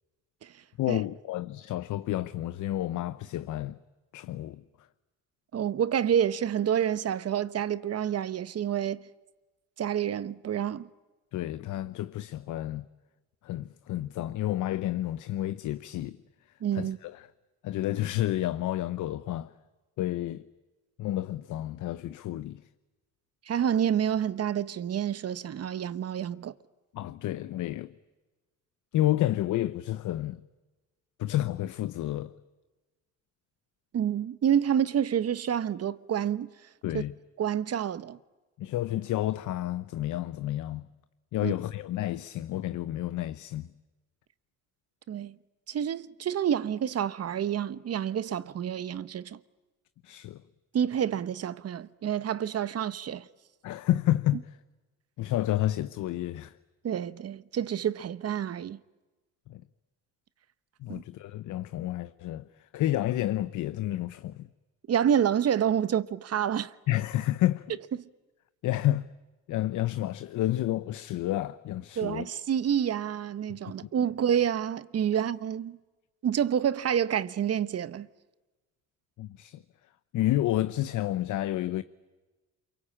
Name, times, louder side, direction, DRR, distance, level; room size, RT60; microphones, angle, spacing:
voice 1, 0.8-3.8 4.1-4.6 11.3-12.8 13.4-16.2 16.7-17.2 17.6-19.5 20.0-20.4 21.0-22.6 26.9-27.9 28.9-30.4 31.2-32.3 36.8-37.1 38.6-40.8 41.3-43.7 50.0-50.4 53.6-54.4 55.2-56.5 59.5-59.6 60.8-62.5 62.7-64.5 66.9-67.6 68.6-69.1 69.5-72.3 79.2-79.6 80.1-81.8, left 14 dB, 80° left, 0.8 m, -30 dB
voice 2, 5.5-9.1 9.8-10.9 16.6-17.0 23.5-26.5 33.9-36.5 36.9-37.0 37.4-38.2 41.4-41.5 45.1-45.3 45.7-49.4 50.7-53.3 56.8-58.8 60.9-61.0 64.9-66.7 68.0-68.1 72.0-75.8 76.2-78.1, right 9 dB, 55° right, 1.0 m, -28 dB
28.5 x 23.0 x 8.7 m
cardioid pair, 90°, 30 cm